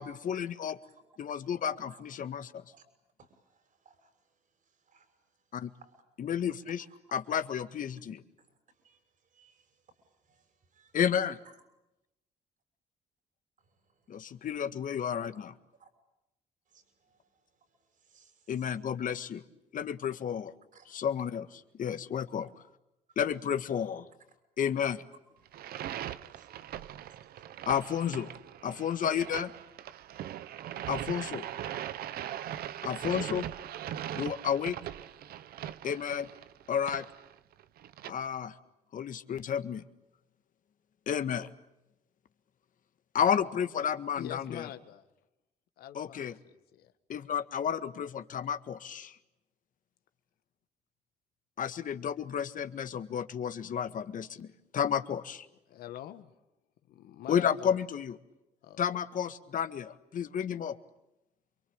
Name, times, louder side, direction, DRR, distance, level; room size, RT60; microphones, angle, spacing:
voice 1, 0.0-0.8 1.2-2.6 5.5-5.7 6.2-6.8 7.1-8.2 10.9-11.4 14.1-15.5 18.5-19.4 19.7-20.5 20.9-22.5 23.1-24.1 24.6-25.0 27.7-28.3 28.6-29.5 30.9-31.5 32.8-33.5 34.1-34.8 35.8-36.3 36.7-37.0 38.1-38.5 38.9-39.8 41.1-41.5 43.1-44.7 45.9-46.3 47.1-49.1 51.6-54.5 54.7-55.4 57.3-58.2 58.8-60.8, left 8 dB, 60° left, 11 dB, 1.7 m, -31 dB
voice 2, 3.2-6.0 6.9-7.2 8.4-11.0 11.5-11.6 13.6-14.5 15.8-15.9 16.7-18.7 20.7-20.9 22.4-22.5 23.1-23.2 26.2-27.7 28.7-28.9, right 5 dB, 55° right, 8 dB, 6.4 m, -65 dB
sound 1, 25.5-38.1, right 11 dB, 80° right, 1.0 m, -40 dB
voice 3, 44.2-45.1 45.8-46.9 55.7-56.3 56.9-57.8 58.6-58.8, left 11 dB, 85° left, 10 dB, 1.9 m, -45 dB
28.5 x 23.5 x 8.9 m, 0.90 s
cardioid pair, 80°, 15 cm